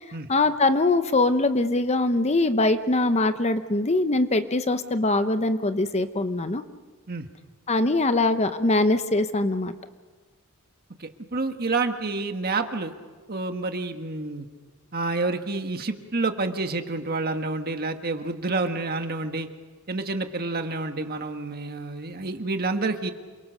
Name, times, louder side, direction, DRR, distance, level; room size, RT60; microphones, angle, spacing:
voice 1, 0.3-6.6 7.7-9.7, left 2 dB, 30° left, 10 dB, 0.9 m, -22 dB
voice 2, 11.0-12.9 13.3-14.5 14.9-19.5 19.9-23.1, right 3 dB, 45° right, 6 dB, 1.6 m, -28 dB
28.0 x 23.5 x 6.5 m, 1.4 s
head